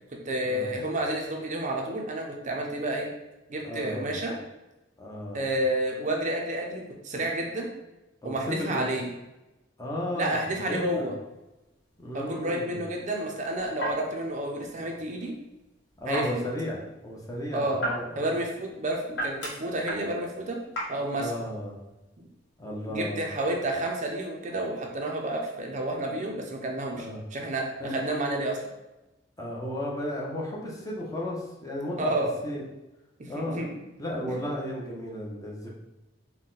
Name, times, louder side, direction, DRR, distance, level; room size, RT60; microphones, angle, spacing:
voice 1, 0.3-3.1 3.5-4.3 5.3-7.7 8.2-9.1 10.1-11.1 12.1-15.4 16.1-16.4 17.5-17.8 18.2-20.6 20.9-21.3 22.2-22.3 22.9-28.6 32.0-32.3 33.2-33.7, right 1 dB, 40° right, 1 dB, 0.5 m, -30 dB
voice 2, 3.6-4.1 5.0-5.5 8.2-8.9 9.8-10.4 10.6-11.1 12.0-12.8 16.0-18.3 21.2-21.8 22.6-23.3 26.9-27.2 27.8-28.0 29.4-32.1 32.4-32.6 33.3-33.6 34.0-35.7, left 1 dB, 20° left, -3 dB, 0.7 m, -34 dB
sound 1, 11.3-24.2, right 1 dB, 65° left, 1.0 m, -39 dB
4.1 x 2.2 x 3.8 m, 0.99 s
head